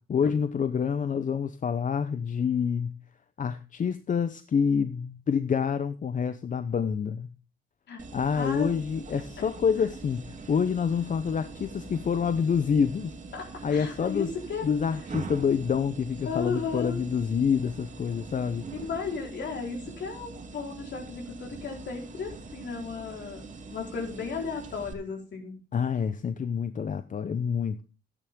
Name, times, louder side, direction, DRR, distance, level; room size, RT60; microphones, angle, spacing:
voice 1, 0.1-3.0 3.4-7.3 8.1-13.1 13.6-14.3 14.6-18.7 25.7-27.8, left 6 dB, 40° left, 0.8 m, -27 dB
sound 1, 8.0-24.9, right 3 dB, 40° right, 2.8 m, -43 dB
voice 2, 8.3-8.7 9.4-9.5 9.7-9.9 13.3-14.7 16.2-17.0 18.7-25.6, left 5 dB, 60° left, 4.5 m, -35 dB
12.5 x 9.8 x 3.8 m
cardioid pair, 90°, 20 cm